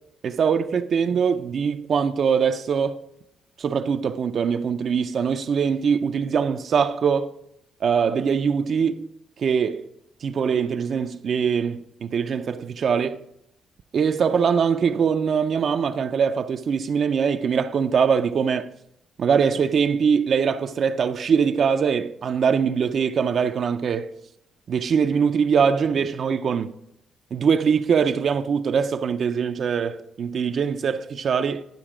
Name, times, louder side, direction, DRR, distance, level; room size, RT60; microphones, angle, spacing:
voice 1, 0.2-3.0 3.6-7.3 7.8-9.1 9.4-9.9 10.2-13.2 13.9-18.7 19.2-24.1 24.7-26.7 27.3-31.6, right 6 dB, 55° right, 0.4 m, -22 dB
10.5 x 5.9 x 4.9 m
cardioid pair, 90°, 0 cm